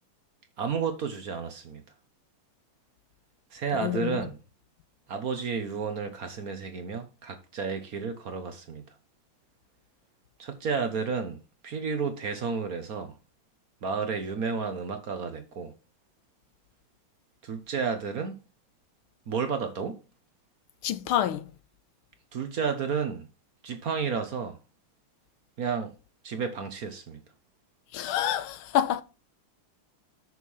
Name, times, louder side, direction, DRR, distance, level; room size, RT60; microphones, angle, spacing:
voice 1, 0.6-1.8 3.5-4.4 5.1-8.8 10.4-11.4 11.6-13.1 13.8-15.7 17.4-18.4 19.3-20.0 22.3-23.2 23.6-24.6 25.6-25.9 26.2-27.2, right 5 dB, 50° right, 1.2 m, -31 dB
voice 2, 3.8-4.2 20.8-21.4 27.9-29.0, left 11 dB, 90° left, 1.5 m, -27 dB
6.6 x 6.4 x 5.5 m
omnidirectional pair, 2.3 m